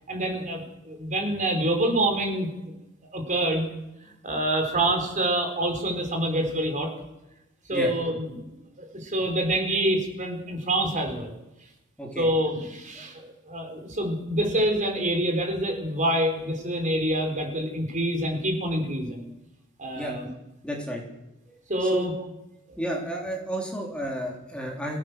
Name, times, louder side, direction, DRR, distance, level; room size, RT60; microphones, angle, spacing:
voice 1, 0.1-2.5 3.1-3.7 4.0-6.9 7.7-8.6 8.9-11.3 12.2-19.3 19.8-20.3 21.7-22.1, right 1 dB, 35° right, 4 dB, 4.2 m, -26 dB
voice 2, 20.6-21.0 21.5-22.1 22.8-25.0, equal, 5° left, -1 dB, 3.6 m, -32 dB
24.0 x 17.0 x 6.7 m, 0.93 s
head